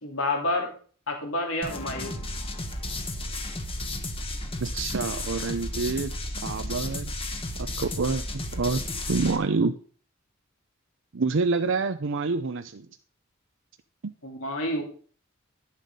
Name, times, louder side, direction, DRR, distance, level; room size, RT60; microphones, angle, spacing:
voice 1, 0.0-0.7 1.1-2.1 14.2-14.9, left 2 dB, 70° left, 2 dB, 2.8 m, -29 dB
sound 1, 1.6-9.4, left 1 dB, 30° left, 1.4 m, -33 dB
voice 2, 4.6-6.1 6.4-7.1 7.6-9.8 11.1-12.9 14.0-14.1, right 4 dB, 65° right, 9 dB, 0.6 m, -27 dB
11.5 x 7.5 x 5.3 m, 0.43 s
head